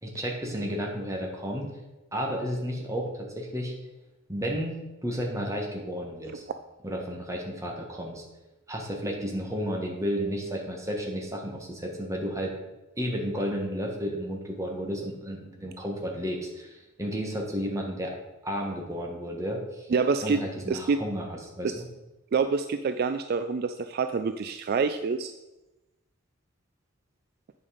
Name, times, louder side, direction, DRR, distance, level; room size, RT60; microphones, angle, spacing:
voice 1, 0.0-1.7 2.1-3.7 4.3-4.8 5.0-6.4 6.8-8.2 8.7-12.5 13.0-18.2 18.4-19.9 20.2-21.9, equal, 15° right, 0 dB, 1.5 m, -32 dB
voice 2, 19.9-20.4 20.7-21.0 22.3-25.3, right 5 dB, 50° right, 9 dB, 0.3 m, -26 dB
8.6 x 5.4 x 4.9 m, 1.0 s
head